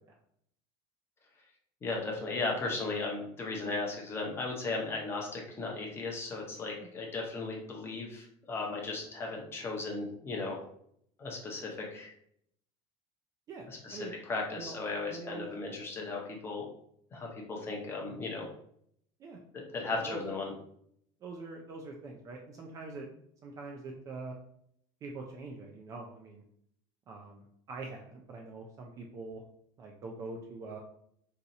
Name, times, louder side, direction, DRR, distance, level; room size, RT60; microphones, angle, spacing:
voice 1, 1.8-10.6 11.2-12.1 13.7-16.7 17.1-18.5 19.5-20.5, left 3 dB, 20° left, -1 dB, 0.7 m, -36 dB
voice 2, 13.5-14.1 14.6-14.8 15.1-15.5 19.2-19.4 19.9-20.4 21.2-23.1 23.4-24.3 25.0-26.4 27.1-29.4 29.8-30.8, right 3 dB, 25° right, 1 dB, 0.3 m, -44 dB
2.8 x 2.4 x 3.9 m, 0.69 s
cardioid pair, 165°, 13 cm